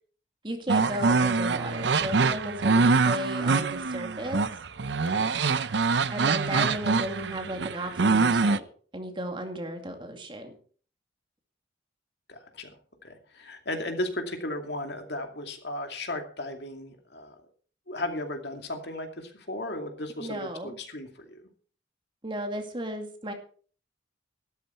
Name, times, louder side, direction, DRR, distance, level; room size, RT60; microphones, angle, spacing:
voice 1, 0.4-4.4 6.1-8.6 8.9-10.5 20.2-20.8 22.2-23.3, right 1 dB, 25° right, 4 dB, 2.3 m, -34 dB
sound 1, 0.7-8.6, right 4 dB, 65° right, 0.6 m, -24 dB
voice 2, 12.3-12.7 13.0-17.3 17.9-21.4, left 1 dB, 60° left, 5 dB, 2.6 m, -35 dB
13.5 x 12.5 x 4.5 m, 0.43 s
head